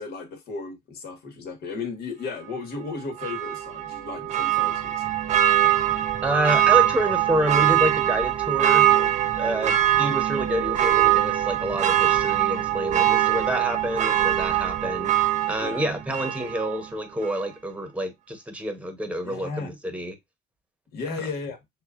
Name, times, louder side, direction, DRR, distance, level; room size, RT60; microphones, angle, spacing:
voice 1, 0.0-5.1 10.1-10.2 15.6-15.9 19.2-19.8 20.9-21.6, left 4 dB, 70° left, 1.5 m, -35 dB
Church bell, 3.2-16.8 17.2-17.3, right 12 dB, 45° right, 0.5 m, -22 dB
voice 2, 6.2-15.1 15.5-20.1 21.1-21.2, right 1 dB, 10° right, 1.0 m, -28 dB
6.3 x 2.3 x 2.4 m
cardioid pair, 110°, 17 cm